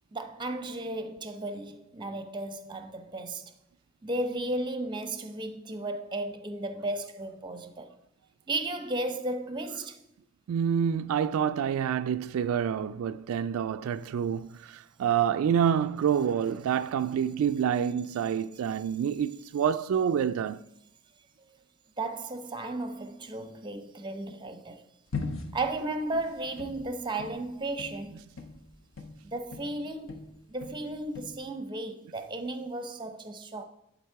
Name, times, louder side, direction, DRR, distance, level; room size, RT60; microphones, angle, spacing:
voice 1, 0.1-3.5 4.0-7.9 8.5-10.0 21.4-21.5 22.0-24.8 25.5-28.3 29.2-30.2 30.5-33.6, right 2 dB, 20° right, 0.6 m, -34 dB
voice 2, 10.5-20.7, right 8 dB, 80° right, 0.3 m, -27 dB
sound 1, 25.1-29.8 30.1-31.4, left 4 dB, 60° left, 0.9 m, -40 dB
11.0 x 4.1 x 4.6 m
head